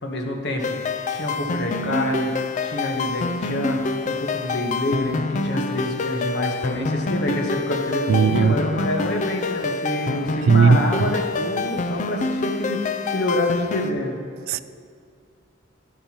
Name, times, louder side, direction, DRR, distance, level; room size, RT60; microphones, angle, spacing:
voice 1, 0.0-0.8 1.1-2.3 2.6-14.2, left 1 dB, 55° left, 2 dB, 1.2 m, -27 dB
sound 1, 0.6-13.9, left 3 dB, 35° left, 0.4 m, -27 dB
voice 2, 8.1-8.6 10.5-11.1 14.5-14.6, right 5 dB, 70° right, 15 dB, 0.3 m, -16 dB
11.5 x 9.8 x 3.0 m, 2.3 s
head